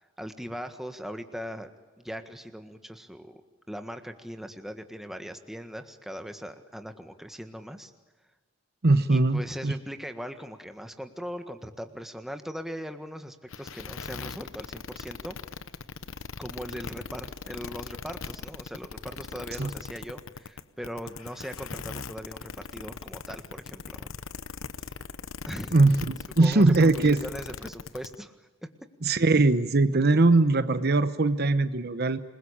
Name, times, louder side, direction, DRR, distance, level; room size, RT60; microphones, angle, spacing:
voice 1, 0.2-3.4 3.7-7.9 9.1-15.4 16.4-24.1 25.4-25.8 26.4-28.7, equal, ahead, 7 dB, 1.6 m, -40 dB
voice 2, 8.8-9.7 19.6-19.7 25.7-27.2 29.0-32.2, right 2 dB, 50° right, 12 dB, 0.9 m, -21 dB
sound 1, 13.5-28.2, left 5 dB, 75° left, 0.9 m, -40 dB
27.5 x 22.0 x 8.7 m, 1.3 s
head